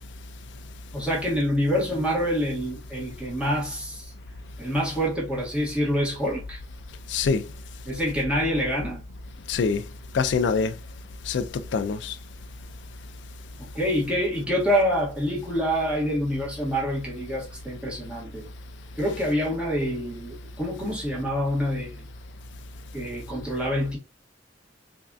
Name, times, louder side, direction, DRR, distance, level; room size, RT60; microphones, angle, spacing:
voice 1, 0.9-4.1 4.6-6.6 7.8-9.0 13.6-18.5 19.0-22.1 22.9-24.0, equal, 5° right, 1.5 m, -26 dB
voice 2, 7.1-7.5 9.5-9.8 10.1-10.8 11.2-12.2, left 5 dB, 70° left, 0.4 m, -25 dB
3.5 x 3.2 x 2.5 m
head